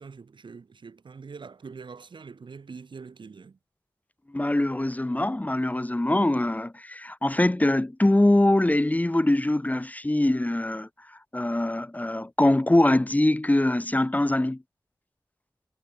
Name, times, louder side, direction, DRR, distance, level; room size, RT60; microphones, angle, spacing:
voice 1, 0.0-3.6, right 5 dB, 90° right, 4.0 m, -44 dB
voice 2, 4.3-10.9 11.3-14.6, left 1 dB, 20° left, 1.1 m, -23 dB
wide cardioid pair, 60°, 8 cm